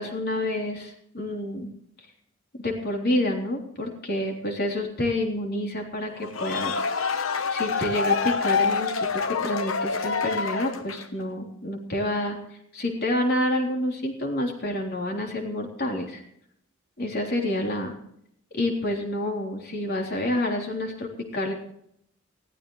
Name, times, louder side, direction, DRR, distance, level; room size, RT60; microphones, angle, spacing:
voice 1, 0.0-1.7 2.6-7.2 7.5-12.4 12.7-16.2 17.0-18.0 18.5-21.5, left 1 dB, 50° left, 1 dB, 3.5 m, -28 dB
sound 1, 6.2-11.2, left 5 dB, 80° left, 1.1 m, -26 dB
21.0 x 15.0 x 3.2 m, 0.71 s
head